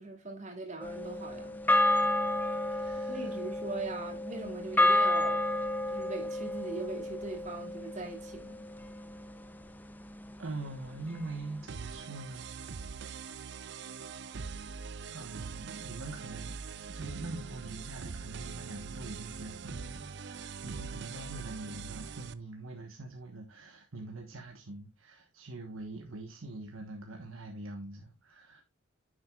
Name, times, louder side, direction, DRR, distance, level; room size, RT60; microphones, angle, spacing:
voice 1, 0.0-1.6 3.1-5.4 5.9-8.6, right 2 dB, 35° right, 2.5 m, -40 dB
sound 1, 0.8-9.3, left 1 dB, 10° left, 0.5 m, -30 dB
voice 2, 2.5-3.4 10.4-12.6 15.1-16.6 16.9-28.6, right 2 dB, 80° right, 1.3 m, -44 dB
sound 2, 11.7-22.3, right 5 dB, 55° right, 0.5 m, -42 dB
9.8 x 7.8 x 2.4 m
head